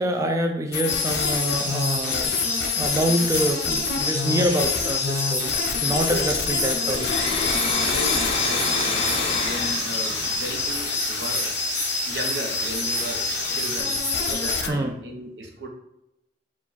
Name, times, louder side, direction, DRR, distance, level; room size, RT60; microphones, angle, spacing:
voice 1, 0.0-2.3 2.8-5.5 5.8-7.1 14.7-14.9, right 1 dB, 20° right, 3 dB, 0.3 m, -26 dB
sound 1, 0.7-14.7, left 7 dB, 60° left, 0.4 m, -29 dB
sound 2, 0.9-14.6, left 2 dB, 15° left, 1.2 m, -28 dB
Domestic sounds home sounds, 6.8-11.3, left 3 dB, 35° left, 0.7 m, -28 dB
voice 2, 6.8-7.5 7.8-11.5 12.0-15.7, right 2 dB, 70° right, 2 dB, 0.8 m, -36 dB
4.7 x 2.4 x 3.9 m, 0.86 s
head